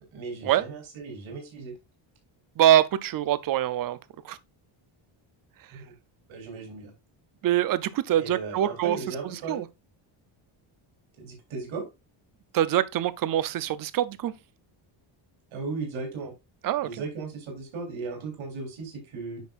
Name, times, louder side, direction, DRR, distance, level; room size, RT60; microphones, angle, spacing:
voice 1, 0.1-1.7 5.7-5.9 6.3-6.9 8.1-9.6 11.2-11.9 15.5-16.3 16.8-19.4, right 4 dB, 70° right, 3.8 m, -36 dB
voice 2, 2.6-4.0 4.2-4.4 7.4-9.0 9.5-9.7 12.5-14.3 16.6-16.9, right 12 dB, 45° right, 0.6 m, -24 dB
9.3 x 6.3 x 2.4 m
cardioid pair, 170°, 49 cm